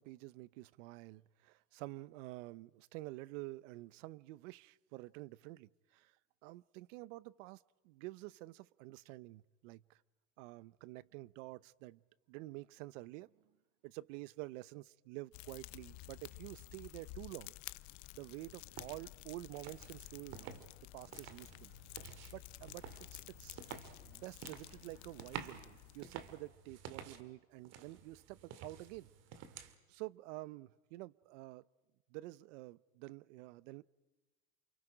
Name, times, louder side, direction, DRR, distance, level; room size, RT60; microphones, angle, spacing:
voice 1, 0.0-6.1 6.4-10.0 10.4-12.0 12.3-13.3 13.8-17.5 18.1-20.6 20.9-21.7 22.3-23.6 24.0-29.1 29.9-31.6 32.1-33.8, right 19 dB, 85° right, 0.8 m, -49 dB
Fire, 15.3-26.5, left 19 dB, 50° left, 0.7 m, -52 dB
sound 1, 18.7-19.0 19.5-20.7 21.0-27.2 27.6-29.8, right 8 dB, 45° right, 2.0 m, -51 dB
29.5 x 28.0 x 5.0 m
cardioid pair, 165°, 37 cm